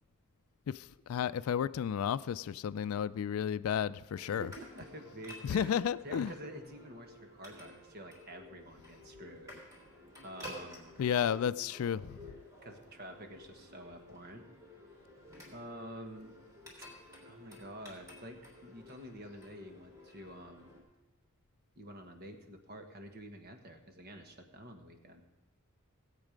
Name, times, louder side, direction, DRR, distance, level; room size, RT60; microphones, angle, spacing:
voice 1, 0.7-4.5 5.4-6.3 11.0-12.2, left 8 dB, 80° left, 15 dB, 0.3 m, -32 dB
sound 1, 4.1-20.8, left 1 dB, 15° right, 3.3 m, -53 dB
voice 2, 4.2-5.8 6.0-9.6 10.2-11.0 12.6-14.5 15.5-16.4 17.2-20.7 21.8-25.2, right 1 dB, 45° right, 5 dB, 1.3 m, -48 dB
17.0 x 8.2 x 5.1 m, 1.1 s
head